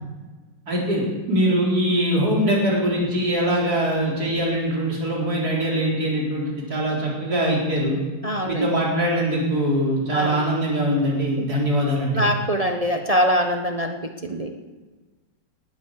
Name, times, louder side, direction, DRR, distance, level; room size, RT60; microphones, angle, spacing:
voice 1, 0.7-1.0 1.3-8.0 8.4-12.3, equal, 55° right, -3 dB, 4.6 m, -22 dB
voice 2, 8.2-8.7 10.1-10.4 11.4-11.5 12.1-14.5, equal, 25° right, 4 dB, 0.8 m, -23 dB
19.0 x 9.3 x 7.5 m, 1.3 s
omnidirectional pair, 1.9 m